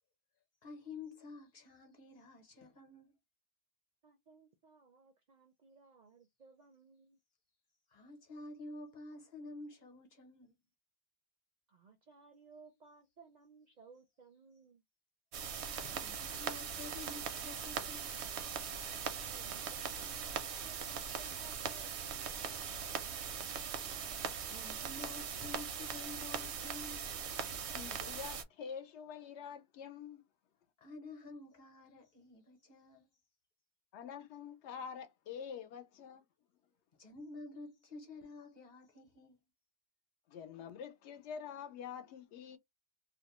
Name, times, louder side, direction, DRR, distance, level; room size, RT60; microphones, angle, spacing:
voice 1, 0.6-3.1 7.9-10.5 15.8-18.1 23.3-23.4 24.5-27.1 30.8-33.1 37.0-39.4, left 3 dB, 45° left, 0.9 m, -50 dB
voice 2, 4.0-7.2 11.7-14.8 19.2-22.1, right 4 dB, 55° right, 0.5 m, -61 dB
sound 1, 15.3-28.4, right 7 dB, 80° right, 0.9 m, -40 dB
voice 3, 27.7-30.2 33.9-36.2 40.3-42.6, left 7 dB, 85° left, 0.9 m, -46 dB
2.5 x 2.1 x 2.9 m
omnidirectional pair, 1.1 m